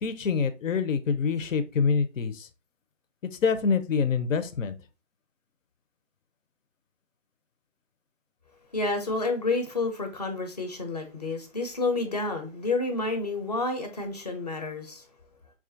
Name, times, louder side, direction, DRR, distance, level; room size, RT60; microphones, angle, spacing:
voice 1, 0.0-2.5 3.4-4.7, left 5 dB, 85° left, 0.7 m, -26 dB
voice 2, 8.7-15.0, left 3 dB, 35° left, 0.5 m, -29 dB
4.4 x 2.4 x 2.6 m
hypercardioid pair, 170°, 38 cm